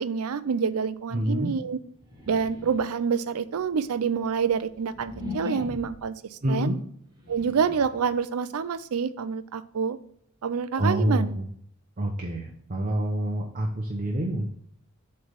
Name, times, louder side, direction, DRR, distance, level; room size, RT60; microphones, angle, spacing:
voice 1, 0.0-1.8 2.3-6.2 6.5-6.7 7.3-10.0 10.4-11.3, right 6 dB, 75° right, 14 dB, 0.4 m, -27 dB
voice 2, 1.1-1.5 6.4-6.8 10.8-11.5 12.0-14.5, right 1 dB, 35° right, 1 dB, 0.7 m, -27 dB
sound 1, 2.0-3.0 3.7-6.1 7.0-8.1, left 3 dB, 20° right, 1.7 m, -39 dB
7.8 x 3.3 x 5.2 m, 0.67 s
head